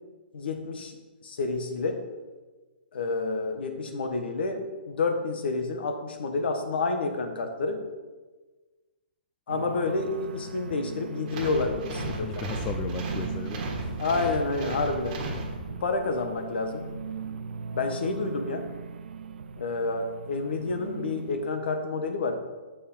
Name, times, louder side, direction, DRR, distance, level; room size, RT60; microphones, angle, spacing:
voice 1, 0.3-0.9 1.2-2.0 2.9-7.8 9.5-12.4 14.0-15.2 15.7-16.9 17.7-18.7 19.6-22.4, left 3 dB, 65° left, 6 dB, 1.3 m, -29 dB
sound 1, 9.5-21.5, right 5 dB, 80° right, 0.4 m, -39 dB
sound 2, 11.3-16.0, right 2 dB, 35° right, 1.6 m, -35 dB
voice 2, 12.0-14.0 14.4-14.7 15.5-15.7, left 6 dB, 20° left, 6 dB, 0.4 m, -37 dB
6.9 x 5.1 x 5.6 m, 1.3 s
hypercardioid pair, 160°, 6 cm